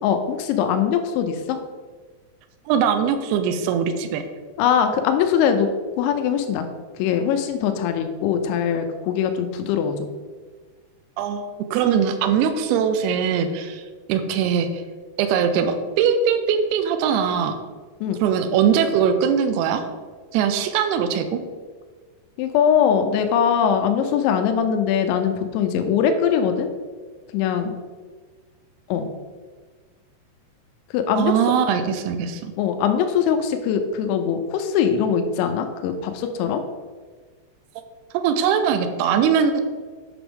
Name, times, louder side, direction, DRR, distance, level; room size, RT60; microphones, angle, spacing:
voice 1, 0.0-1.6 4.6-5.7 6.0-6.7 7.0-10.1 18.0-18.2 22.4-26.7 27.3-27.7 28.9-29.1 30.9-31.4 32.6-36.6, left 8 dB, 85° left, 7 dB, 2.9 m, -21 dB
voice 2, 2.7-4.2 11.2-13.8 14.1-14.8 15.2-17.5 18.2-19.8 20.3-21.4 31.1-32.5 38.1-39.6, right 7 dB, 90° right, 7 dB, 2.3 m, -21 dB
7.9 x 5.9 x 3.6 m, 1.4 s
omnidirectional pair, 5.2 m